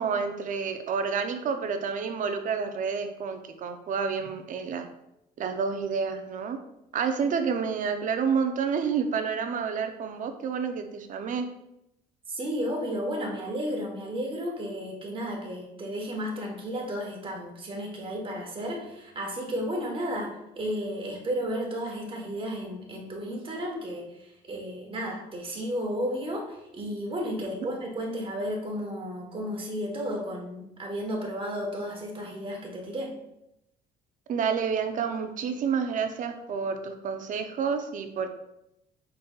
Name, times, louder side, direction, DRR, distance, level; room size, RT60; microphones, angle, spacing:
voice 1, 0.0-4.9 5.4-6.6 6.9-11.5 27.4-27.5 34.3-38.3, right 6 dB, 50° right, 7 dB, 0.5 m, -29 dB
voice 2, 12.3-33.1, equal, 30° right, 0 dB, 1.2 m, -33 dB
5.3 x 3.9 x 2.3 m, 0.84 s
cardioid pair, 110°, 17 cm